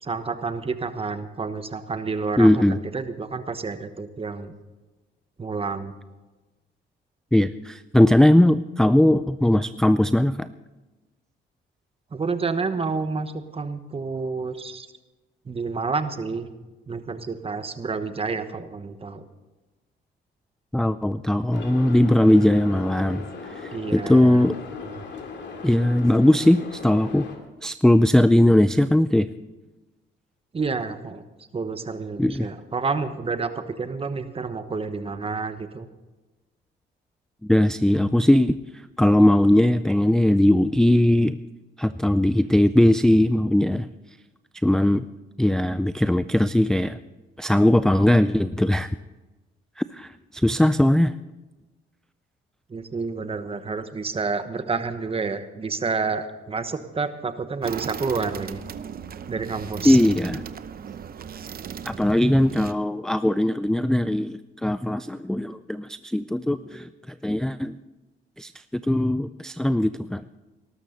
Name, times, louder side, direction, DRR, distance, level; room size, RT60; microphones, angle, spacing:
voice 1, 0.0-4.5 5.4-5.9 12.1-14.9 15.4-16.5 16.9-19.2 23.7-24.5 25.0-25.1 30.5-31.2 31.5-35.9 52.7-58.6 59.3-60.0, right 4 dB, 30° right, 10 dB, 1.2 m, -29 dB
voice 2, 2.4-2.8 7.3-10.5 20.7-24.6 25.6-27.2 27.6-29.3 32.2-32.5 37.4-38.6 39.0-41.4 41.8-43.9 44.6-45.0 45.4-47.0 47.4-48.9 49.9-51.1 59.8-60.4 61.8-66.9 67.2-67.8 68.4-70.2, left 1 dB, 5° left, 13 dB, 0.4 m, -19 dB
sound 1, 21.5-27.4, left 4 dB, 65° left, 2.4 m, -37 dB
sound 2, 57.6-62.7, right 8 dB, 50° right, 0.8 m, -36 dB
19.0 x 12.5 x 4.1 m, 1.1 s
cardioid pair, 90°, 20 cm